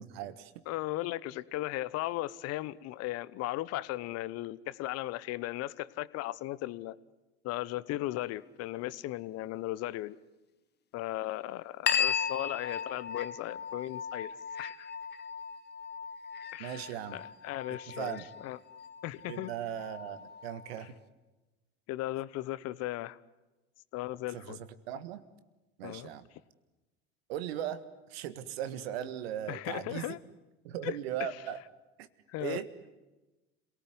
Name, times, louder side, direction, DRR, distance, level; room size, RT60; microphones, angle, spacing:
voice 1, 0.0-0.5 16.6-17.2 17.7-18.2 19.3-21.0 24.3-25.2 25.8-26.3 27.3-27.8 28.1-30.2 30.6-31.6 32.0-32.1 32.4-32.7, right 10 dB, 75° right, 13 dB, 1.7 m, -38 dB
voice 2, 0.7-7.0 7.4-10.2 10.9-14.9 16.5-16.8 17.1-18.6 19.0-19.5 21.9-23.2 23.9-24.6 25.8-26.1 29.5-30.2 30.8-31.0 32.3-32.6, left 16 dB, 55° left, 18 dB, 1.0 m, -37 dB
sound 1, 11.9-20.9, left 7 dB, 35° left, 1.2 m, -37 dB
27.0 x 18.0 x 9.7 m, 1.1 s
hypercardioid pair, 85°, 31 cm